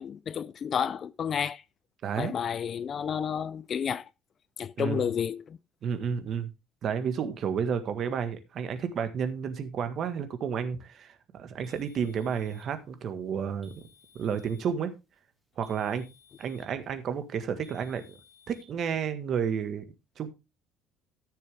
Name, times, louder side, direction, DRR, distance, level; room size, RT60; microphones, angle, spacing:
voice 1, 0.0-1.6 2.2-4.1 4.6-5.6, left 8 dB, 40° left, 0.4 m, -31 dB
voice 2, 2.0-2.3 4.8-5.0 5.8-6.5 6.8-13.8 14.1-14.9 15.6-16.0 16.4-18.2 18.5-19.8 20.2-20.3, right 7 dB, 50° right, 1.6 m, -31 dB
sound 1, 11.6-12.8 13.6-14.8 15.6-16.8 17.6-18.7, left 4 dB, 5° right, 2.2 m, -59 dB
14.0 x 6.7 x 3.5 m
cardioid pair, 135°, 0 cm